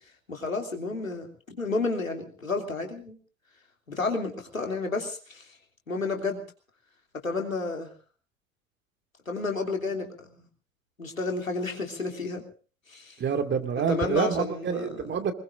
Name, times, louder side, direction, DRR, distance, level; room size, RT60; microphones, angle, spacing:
voice 1, 0.3-3.2 3.9-5.4 5.9-6.4 7.2-7.9 9.3-10.3 11.0-12.4 12.9-13.1 13.9-15.1, left 3 dB, 85° left, 2 dB, 3.2 m, -31 dB
voice 2, 13.2-15.3, right 6 dB, 25° right, 6 dB, 2.5 m, -27 dB
25.5 x 20.5 x 2.7 m, 0.39 s
figure-of-eight pair, 75°, 39 cm